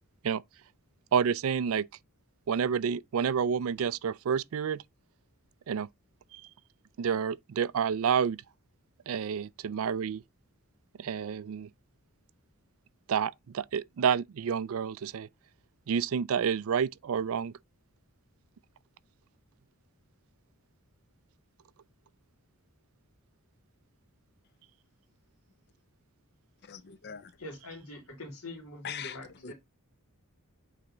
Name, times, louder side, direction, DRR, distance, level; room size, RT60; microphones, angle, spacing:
voice 1, 1.1-1.9 2.5-4.8 5.7-5.9 6.3-6.4 7.0-8.4 9.1-10.2 11.0-11.7 13.1-15.3 15.9-17.5, right 7 dB, 65° right, 0.4 m, -29 dB
voice 2, 26.6-27.4 28.8-29.5, left 7 dB, 50° left, 0.5 m, -42 dB
voice 3, 27.4-29.5, left 1 dB, 85° left, 2.7 m, -44 dB
8.5 x 3.3 x 3.8 m
head